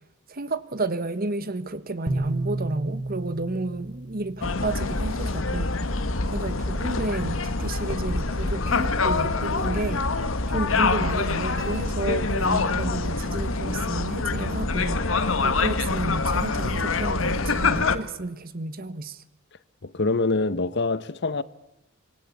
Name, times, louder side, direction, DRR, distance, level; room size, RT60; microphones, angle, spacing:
voice 1, 0.3-5.7 6.3-10.1 10.5-15.1 15.4-19.2, right 2 dB, 45° right, 1.3 m, -31 dB
sound 1, 2.1-5.3, right 2 dB, 20° right, 1.5 m, -32 dB
sound 2, 4.4-18.0, left 3 dB, 80° left, 1.4 m, -25 dB
sound 3, 11.6-13.1, right 2 dB, 85° right, 7.3 m, -50 dB
voice 2, 19.8-21.4, left 3 dB, 60° left, 0.9 m, -25 dB
26.0 x 21.5 x 8.4 m
head